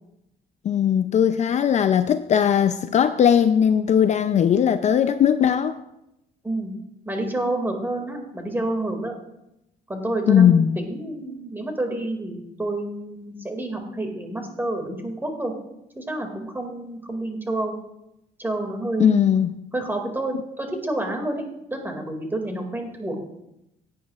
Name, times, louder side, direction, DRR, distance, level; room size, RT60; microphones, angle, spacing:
voice 1, 0.6-5.8 10.3-10.8 19.0-19.5, left 8 dB, 45° left, 0.5 m, -19 dB
voice 2, 7.1-9.1 9.9-15.5 16.0-17.7 18.4-19.1 19.7-23.2, right 2 dB, 10° right, 2.2 m, -29 dB
16.5 x 9.3 x 2.4 m
cardioid pair, 110°, 17 cm